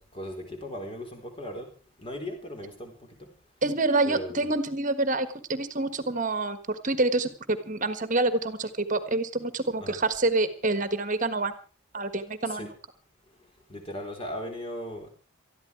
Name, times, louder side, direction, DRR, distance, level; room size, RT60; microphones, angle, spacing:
voice 1, 0.0-1.7 2.0-3.3 4.0-4.4 9.8-10.0 12.4-12.7 13.7-15.1, equal, 25° left, 4.2 m, -37 dB
voice 2, 3.6-11.5 11.9-12.7, right 2 dB, 40° right, 1.5 m, -27 dB
20.0 x 13.5 x 4.7 m
head